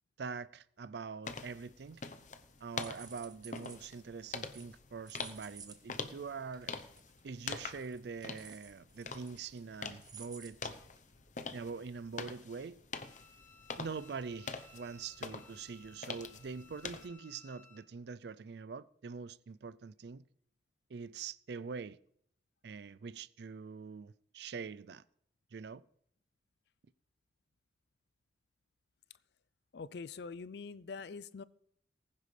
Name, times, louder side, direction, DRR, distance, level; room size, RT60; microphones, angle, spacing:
voice 1, 0.2-2.0 2.6-6.7 7.2-10.7 11.5-12.8 13.8-20.2 20.9-22.0 22.6-25.0 25.5-25.8, right 5 dB, 60° right, 0.4 m, -44 dB
sound 1, 1.3-17.1, left 4 dB, 40° left, 0.8 m, -45 dB
sound 2, 1.9-2.3 2.6-3.9 4.4-4.7 5.1-5.8 6.0-6.1 6.5-6.6 7.0-7.2 7.5-9.6 10.0-10.5 11.0-11.1 11.4-11.5, right 7 dB, 20° right, 0.9 m, -54 dB
Bowed string instrument, 12.9-17.9, left 4 dB, 10° left, 0.8 m, -61 dB
voice 2, 29.7-31.4, left 4 dB, 60° left, 0.4 m, -44 dB
19.0 x 10.0 x 3.3 m
head